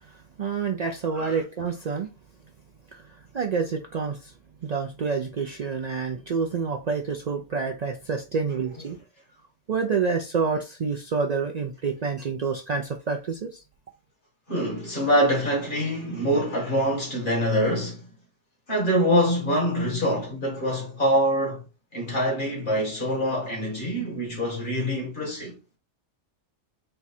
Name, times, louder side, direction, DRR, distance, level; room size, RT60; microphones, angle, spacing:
voice 1, 0.0-2.1 2.9-4.3 4.6-9.0 9.7-13.6, right 5 dB, 85° right, 0.3 m, -28 dB
voice 2, 14.5-18.1 18.7-21.6 21.9-25.5, equal, 40° left, 1.9 m, -25 dB
4.4 x 2.4 x 4.1 m
omnidirectional pair, 1.3 m